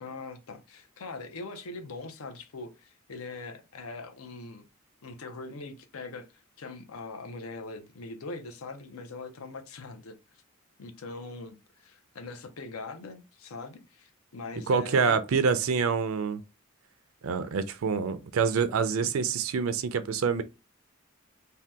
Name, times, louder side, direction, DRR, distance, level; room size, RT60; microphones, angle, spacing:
voice 1, 0.0-4.7 5.0-6.3 6.6-10.2 10.8-15.3, left 3 dB, 85° left, 0.6 m, -41 dB
voice 2, 14.7-16.4 17.2-20.4, right 5 dB, 75° right, 0.4 m, -26 dB
2.7 x 2.2 x 3.4 m
head